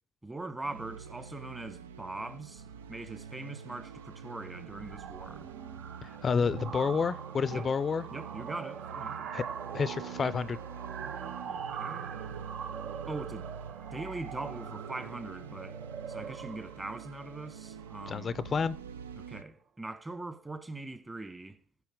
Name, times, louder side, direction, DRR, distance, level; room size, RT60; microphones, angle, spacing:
voice 1, 0.2-5.5 7.5-7.7 8.1-9.3 11.5-12.1 13.1-13.5 13.9-15.8 16.1-18.4 19.2-21.6, right 2 dB, 20° right, 1.5 m, -41 dB
sound 1, 0.6-19.4, right 6 dB, 85° right, 0.3 m, -46 dB
sound 2, 2.7-3.0 3.3-3.6 3.8-18.7, right 7 dB, 55° right, 0.7 m, -43 dB
voice 2, 6.0-8.0 9.3-9.4 9.7-10.6 18.1-18.8, left 5 dB, 40° left, 0.4 m, -29 dB
15.5 x 5.7 x 3.8 m
hypercardioid pair, 55°, 0 cm